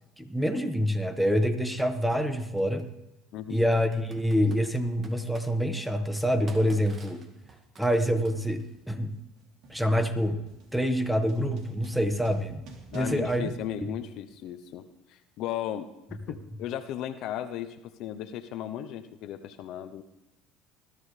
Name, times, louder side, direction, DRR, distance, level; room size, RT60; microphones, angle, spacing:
voice 1, 0.2-2.9 3.5-7.2 7.8-9.1 9.7-10.4 10.7-12.6 12.9-13.5 13.8-13.9, equal, 5° right, 8 dB, 1.6 m, -26 dB
Computer keyboard, 0.9-1.0 2.6-2.8 3.7-5.5 6.1-8.8, right 3 dB, 40° right, 2.1 m, -51 dB
sound 1, 7.4-14.3, right 2 dB, 65° right, 3.4 m, -53 dB
voice 2, 12.9-15.9 16.3-20.0, left 11 dB, 65° left, 9 dB, 0.8 m, -36 dB
21.0 x 12.5 x 3.3 m, 0.94 s
hypercardioid pair, 75°, 0 cm